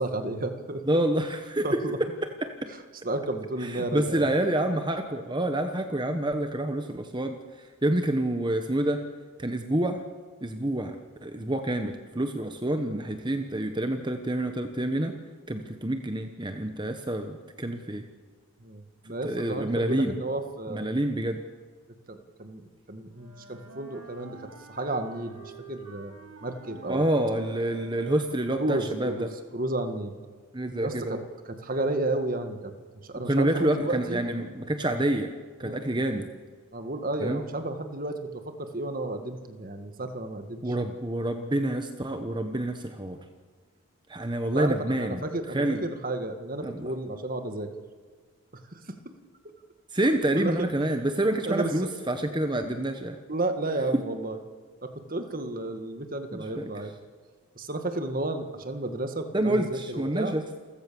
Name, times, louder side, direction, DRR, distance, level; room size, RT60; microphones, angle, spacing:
voice 1, 0.0-0.8 1.6-2.0 3.0-4.3 18.6-20.9 22.1-24.4 24.7-26.1 26.4-27.0 28.5-29.3 29.5-30.1 30.8-31.2 31.5-32.7 33.0-34.2 35.6-35.8 36.7-40.7 44.5-44.7 45.0-47.7 48.7-48.8 50.4-50.7 51.4-51.9 53.3-54.4 54.8-56.9 57.6-60.4, right 2 dB, 40° right, 7 dB, 1.9 m, -32 dB
voice 2, 0.9-1.8 2.4-2.7 3.6-9.0 9.4-10.0 10.4-15.2 15.5-18.0 19.2-20.2 20.7-21.4 26.9-29.3 30.5-31.2 33.2-35.3 35.6-36.3 37.2-37.4 40.6-43.2 44.1-45.2 45.5-45.8 46.6-46.9 49.9-53.2 56.3-56.7 59.3-60.4, right 1 dB, 20° right, 6 dB, 1.1 m, -28 dB
Wind instrument woodwind instrument, 23.1-28.6, right 4 dB, 90° right, 5.2 m, -48 dB
28.5 x 14.5 x 7.1 m, 1.5 s
head